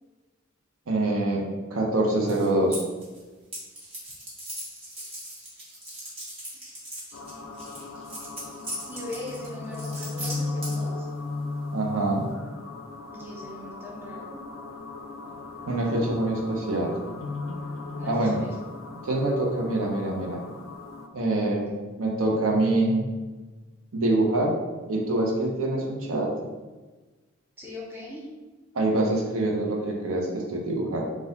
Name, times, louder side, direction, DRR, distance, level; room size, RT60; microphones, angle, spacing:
voice 1, 0.9-1.4 1.7-2.8 11.7-12.3 15.7-16.9 18.0-18.4 19.0-20.4 21.1-21.7 22.0-23.1 23.9-24.5 24.9-26.3 28.7-31.0, right 2 dB, 85° right, 0 dB, 0.8 m, -25 dB
sound 1, 2.3-3.2 3.5-10.9, equal, 25° right, 1.2 m, -39 dB
sound 2, 7.1-21.1, left 3 dB, 70° left, 0.4 m, -36 dB
voice 2, 8.9-11.1 13.1-14.4 18.0-18.5 27.6-28.3, left 1 dB, 10° right, -5 dB, 0.7 m, -40 dB
4.1 x 2.4 x 3.9 m, 1.3 s
head